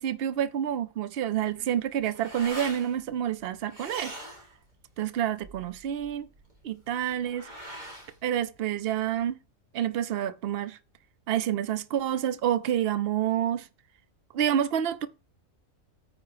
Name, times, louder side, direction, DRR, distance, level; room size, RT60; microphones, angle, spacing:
voice 1, 0.0-4.1 5.0-6.3 6.6-7.5 8.2-9.4 9.7-10.8 11.3-13.7 14.3-15.1, right 10 dB, 55° right, 0.8 m, -28 dB
sound 1, 1.4-9.3, right 1 dB, 35° right, 3.1 m, -45 dB
9.4 x 5.0 x 4.9 m
omnidirectional pair, 1.4 m